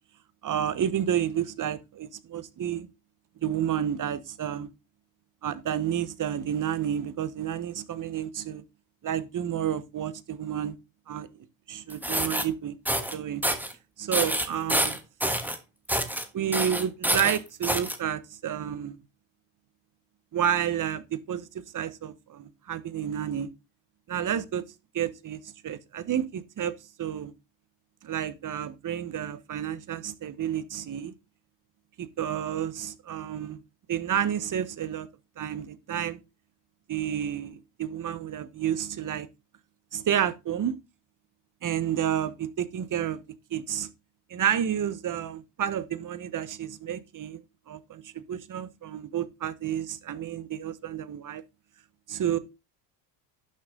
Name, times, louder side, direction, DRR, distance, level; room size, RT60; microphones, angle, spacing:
voice 1, 0.4-2.9 3.4-4.7 5.4-8.6 9.0-10.8 11.1-11.3 11.7-12.8 13.1-13.4 14.0-15.0 16.3-19.0 20.3-21.5 21.7-23.5 24.1-24.6 24.9-26.7 27.0-27.3 28.0-31.1 32.0-33.6 33.9-35.1 35.4-36.2 36.9-39.3 39.9-40.8 41.6-43.2 43.5-43.9 44.3-51.4 52.1-52.4, right 9 dB, 40° right, 1.2 m, -30 dB
sound 1, 11.9-12.4 12.9-13.1 13.4-13.7 14.1-15.6 15.9-16.2 16.5-18.0, right 1 dB, 5° right, 1.4 m, -27 dB
11.5 x 6.3 x 3.8 m
supercardioid pair, 90°, 50 cm